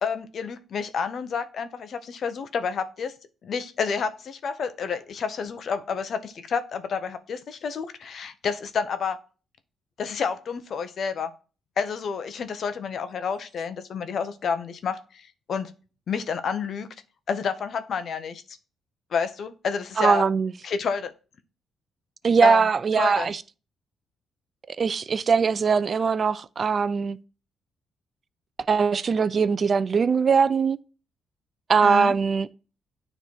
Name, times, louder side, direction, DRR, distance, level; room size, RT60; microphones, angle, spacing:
voice 1, 0.0-3.1 3.4-9.2 10.0-11.3 11.8-15.7 16.1-16.9 17.3-18.6 19.1-20.2 20.6-21.1 22.4-22.7 23.0-23.3 31.8-32.1, left 6 dB, 60° left, 0.8 m, -29 dB
voice 2, 20.0-20.5 22.2-23.4 24.7-27.2 28.7-30.8 31.7-32.5, right 5 dB, 40° right, 0.4 m, -21 dB
9.5 x 3.3 x 4.5 m
cardioid pair, 90°, 0 cm